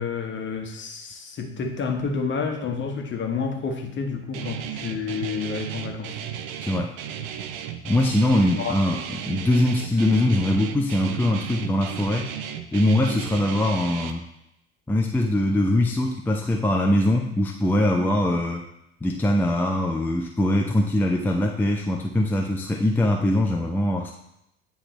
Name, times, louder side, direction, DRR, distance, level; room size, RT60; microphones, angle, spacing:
voice 1, 0.0-6.1 8.6-8.7, left 5 dB, 35° left, 3 dB, 1.2 m, -29 dB
Guitar, 4.3-14.1, right 9 dB, 65° right, 0.6 m, -34 dB
voice 2, 6.6-6.9 7.8-12.3 12.7-14.2 14.9-18.6 19.0-24.1, left 1 dB, 5° left, 0 dB, 0.6 m, -22 dB
9.8 x 3.5 x 3.1 m, 0.82 s
hypercardioid pair, 75°, 33 cm